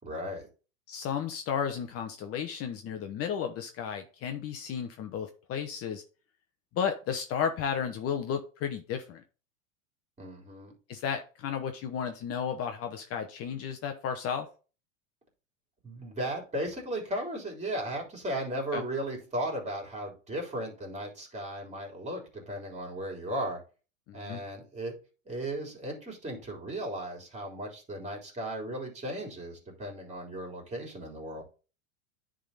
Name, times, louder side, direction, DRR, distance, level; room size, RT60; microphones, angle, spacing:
voice 1, 0.0-0.5 10.2-10.7 15.8-23.6 24.1-24.9 25.3-31.4, right 1 dB, 15° right, 1 dB, 3.6 m, -36 dB
voice 2, 0.9-6.0 6.7-9.2 10.9-14.5 18.7-18.8 24.1-24.4, left 7 dB, 35° left, 6 dB, 1.0 m, -33 dB
10.0 x 3.9 x 4.1 m, 0.35 s
hypercardioid pair, 110°, 40 cm